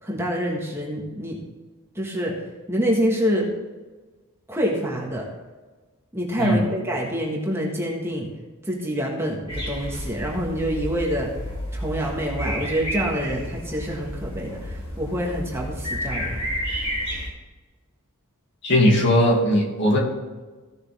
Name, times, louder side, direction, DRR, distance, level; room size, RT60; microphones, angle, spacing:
voice 1, 0.0-1.4 1.9-2.3 2.7-3.5 4.5-5.3 6.1-8.3 8.6-11.3 11.7-16.4, equal, 10° right, -2 dB, 1.6 m, -26 dB
voice 2, 6.4-6.7 18.6-20.0, left 1 dB, 55° left, -2 dB, 2.4 m, -18 dB
sound 1, 9.5-17.3, equal, 25° left, 3.1 m, -31 dB
15.5 x 6.5 x 3.6 m, 1.3 s
head